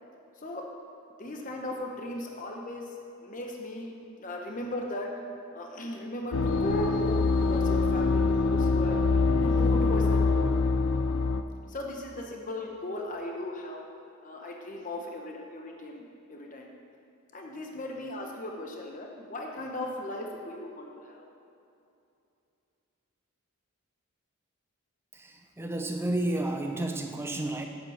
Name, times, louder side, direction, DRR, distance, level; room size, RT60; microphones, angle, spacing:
voice 1, 0.4-0.7 1.2-2.9 3.2-3.9 4.2-5.1 5.5-9.1 9.4-10.5 11.7-13.8 14.2-16.7 17.3-21.3, left 1 dB, 35° left, 1 dB, 0.9 m, -37 dB
sound 1, 6.3-11.4, left 3 dB, 65° left, 0.4 m, -24 dB
voice 2, 25.1-27.7, right 1 dB, 10° right, 4 dB, 0.5 m, -31 dB
8.1 x 7.9 x 5.7 m, 2.7 s
head